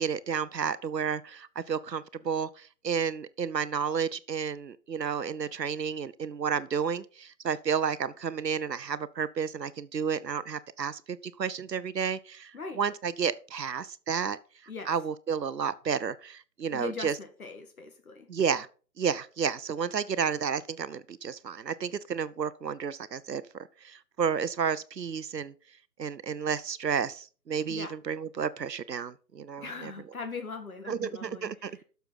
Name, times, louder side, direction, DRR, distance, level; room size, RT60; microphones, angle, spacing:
voice 1, 0.0-14.4 14.9-17.2 18.3-18.7 19.0-25.5 26.0-29.9 30.9-31.8, right 7 dB, 75° right, 0.8 m, -31 dB
voice 2, 16.7-18.3 27.7-27.9 29.6-31.8, left 4 dB, 55° left, 1.8 m, -40 dB
11.0 x 6.8 x 4.1 m
figure-of-eight pair, 150°, 50 cm